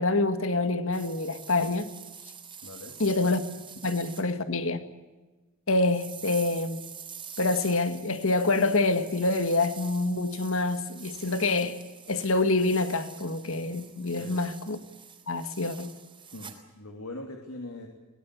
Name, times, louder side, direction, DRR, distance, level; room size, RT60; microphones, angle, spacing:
voice 1, 0.0-1.9 3.0-3.4 3.8-4.8 5.7-6.8 7.4-11.8 12.1-14.8 15.3-15.9, left 2 dB, 65° left, 1.9 m, -26 dB
sound 1, 0.9-4.2 5.8-16.6, right 7 dB, 25° right, 3.4 m, -46 dB
voice 2, 2.6-3.0 14.1-14.4 16.3-17.9, left 2 dB, 85° left, 2.9 m, -41 dB
23.5 x 19.5 x 8.4 m
head